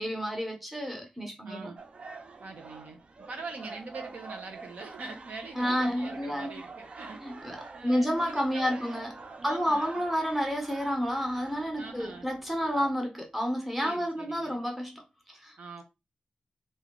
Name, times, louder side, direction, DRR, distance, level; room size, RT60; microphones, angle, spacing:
voice 1, 0.0-1.7 5.5-6.6 7.2-7.6 7.8-9.1 9.4-15.5, equal, 5° right, 1.0 m, -30 dB
voice 2, 1.4-1.8 2.4-3.0 3.3-7.5 7.7-8.9 9.4-10.0 11.8-12.3 13.8-14.6 15.6-15.8, right 3 dB, 75° right, 1.0 m, -43 dB
sound 1, 1.8-12.9, right 4 dB, 50° right, 0.5 m, -46 dB
3.3 x 2.7 x 3.8 m
wide cardioid pair, 140°, 3 cm